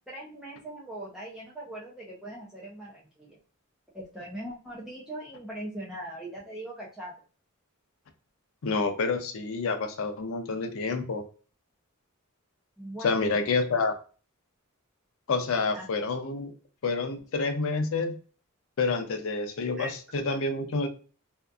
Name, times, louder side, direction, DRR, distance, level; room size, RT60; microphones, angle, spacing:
voice 1, 0.1-3.4 3.9-7.1 12.8-13.4 15.7-16.0 19.8-19.9, right 1 dB, ahead, -6 dB, 0.5 m, -40 dB
voice 2, 8.6-11.2 13.0-13.9 15.3-16.5 16.8-18.2 18.8-20.9, left 4 dB, 65° left, 7 dB, 0.5 m, -28 dB
2.6 x 2.4 x 2.2 m, 0.37 s
head